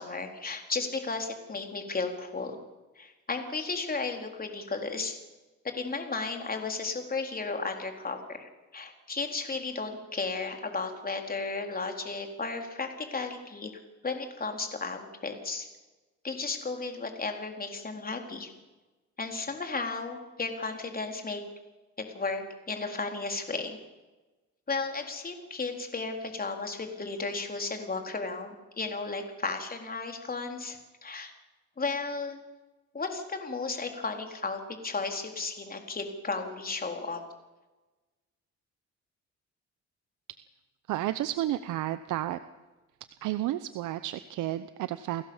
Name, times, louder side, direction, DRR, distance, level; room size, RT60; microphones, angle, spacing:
voice 1, 0.0-2.6 3.0-5.2 5.6-13.8 14.0-15.7 16.2-18.5 19.2-21.4 22.0-23.8 24.7-31.3 31.8-32.4 32.9-37.2, left 3 dB, 30° left, 4 dB, 4.1 m, -34 dB
voice 2, 40.9-42.4 43.2-45.2, right 13 dB, 90° right, 12 dB, 0.9 m, -31 dB
29.5 x 16.5 x 7.3 m, 1.2 s
cardioid pair, 90°, 30 cm